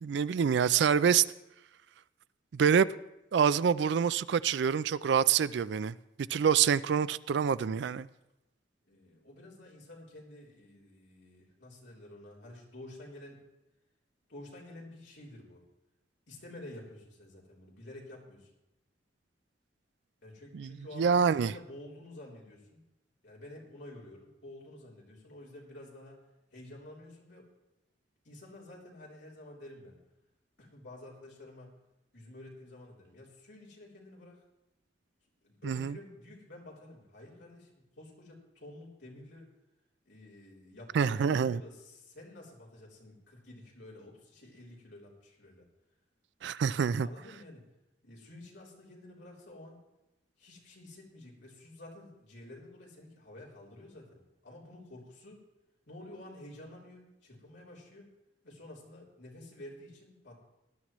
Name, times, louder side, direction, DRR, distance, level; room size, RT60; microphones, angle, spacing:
voice 1, 0.0-1.2 2.5-2.9 3.3-5.9 6.3-8.1 20.5-20.7 21.0-21.5 35.6-36.0 40.9-41.6 46.4-47.1, right 7 dB, 65° right, 0.3 m, -26 dB
voice 2, 8.9-13.4 14.3-15.6 16.3-18.5 20.2-22.8 23.2-26.2 26.5-27.5 28.2-30.0 30.6-31.7 32.1-34.4 35.4-39.5 40.1-45.7 47.0-47.6 48.0-49.8 50.4-55.4 55.9-58.1 58.4-60.4, left 1 dB, 65° left, 3.5 m, -50 dB
18.5 x 11.5 x 3.1 m
head